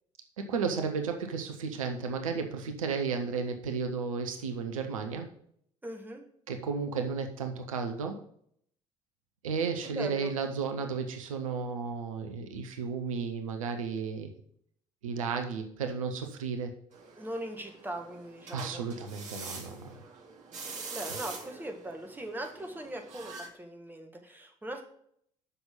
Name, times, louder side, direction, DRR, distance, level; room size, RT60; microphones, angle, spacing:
voice 1, 0.4-5.3 6.5-8.2 9.4-14.3 15.0-16.7 18.5-20.0, right 5 dB, 75° right, 5 dB, 0.8 m, -33 dB
voice 2, 5.8-6.2 9.8-10.3 17.1-18.8 20.9-24.8, right 1 dB, 10° right, 2 dB, 1.7 m, -40 dB
sound 1, 16.9-23.5, right 4 dB, 45° right, 2.0 m, -45 dB
6.9 x 6.0 x 5.3 m, 0.66 s
figure-of-eight pair, 50°, 17 cm